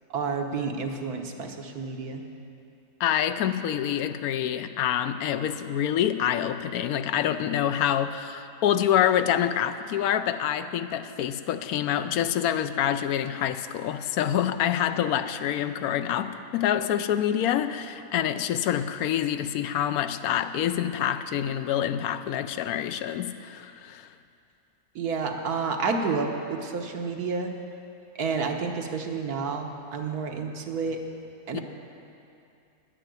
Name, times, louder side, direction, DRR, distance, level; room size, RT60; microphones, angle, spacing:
voice 1, 0.1-2.2 24.9-27.5 28.2-31.0 31.5-31.6, right 4 dB, 90° right, 3 dB, 1.6 m, -30 dB
voice 2, 3.0-24.1 31.5-31.6, left 10 dB, 80° left, 10 dB, 1.1 m, -26 dB
10.5 x 9.0 x 9.1 m, 2.6 s
omnidirectional pair, 1.6 m